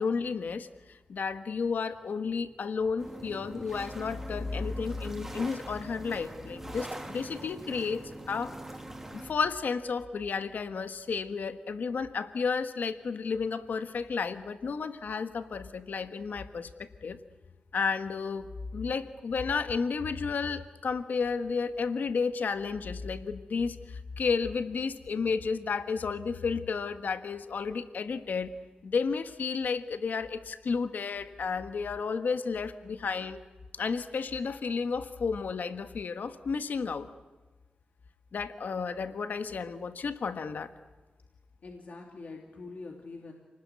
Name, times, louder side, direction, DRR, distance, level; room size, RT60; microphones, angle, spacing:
voice 1, 0.0-8.5 9.1-17.2 17.7-28.5 28.8-33.4 33.7-37.1 38.3-40.7, left 5 dB, 70° left, 10 dB, 1.4 m, -32 dB
sound 1, 3.0-9.3, right 1 dB, 10° right, 2.7 m, -43 dB
voice 2, 41.6-43.3, left 3 dB, 55° left, 1 dB, 2.9 m, -44 dB
29.0 x 20.0 x 9.6 m, 1.3 s
wide cardioid pair, 175°, 3 cm